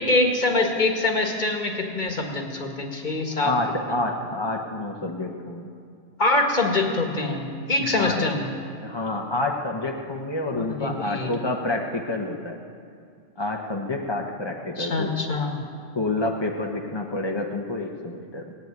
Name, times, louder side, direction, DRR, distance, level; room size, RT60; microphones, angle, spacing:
voice 1, 0.0-3.5 6.2-7.4 7.7-8.4 10.5-11.3 14.8-15.5, left 2 dB, 40° left, 2 dB, 1.6 m, -24 dB
voice 2, 3.4-5.7 7.9-8.3 8.8-12.6 13.4-15.1 15.9-18.5, left 2 dB, 25° left, 1 dB, 0.9 m, -28 dB
17.5 x 8.4 x 9.4 m, 2.4 s
omnidirectional pair, 1.3 m